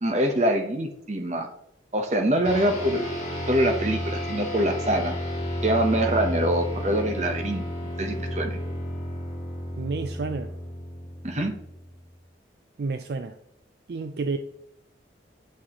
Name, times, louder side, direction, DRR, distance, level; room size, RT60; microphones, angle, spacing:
voice 1, 0.0-1.5 1.9-3.1 3.5-5.2 5.6-7.6 8.0-8.6 11.2-11.5, right 1 dB, 40° right, 1.0 m, -24 dB
sound 1, 2.4-12.1, equal, 35° left, 2.3 m, -32 dB
voice 2, 9.8-10.5 12.8-13.4 13.9-14.4, right 4 dB, 60° right, 0.4 m, -30 dB
9.7 x 6.2 x 3.0 m
head